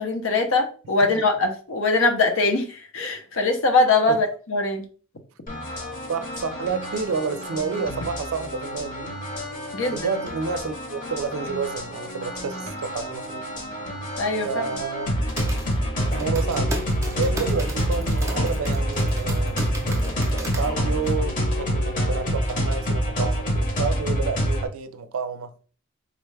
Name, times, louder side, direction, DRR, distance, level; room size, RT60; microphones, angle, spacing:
voice 1, 0.0-4.9 9.7-10.1 14.2-14.5, left 3 dB, 75° left, 0.7 m, -22 dB
sound 1, 5.5-24.7, equal, 40° left, 0.9 m, -27 dB
voice 2, 6.1-9.2 9.9-13.5 14.4-15.1 15.9-16.7 17.2-25.5, right 5 dB, 85° right, 0.4 m, -30 dB
sound 2, 15.0-21.2, right 1 dB, 15° right, 0.5 m, -37 dB
3.7 x 2.2 x 3.2 m
head